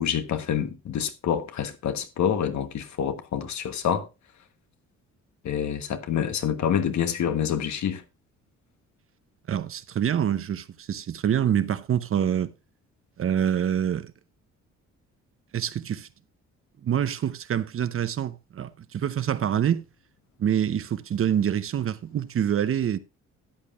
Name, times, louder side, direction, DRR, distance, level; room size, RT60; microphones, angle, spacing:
voice 1, 0.0-4.1 5.4-8.0, left 8 dB, 65° left, 1.3 m, -27 dB
voice 2, 9.5-12.5 13.2-14.1 15.5-16.1 16.8-19.8 20.4-23.0, right 9 dB, 45° right, 0.7 m, -26 dB
13.0 x 9.0 x 2.5 m
cardioid pair, 90°, 30 cm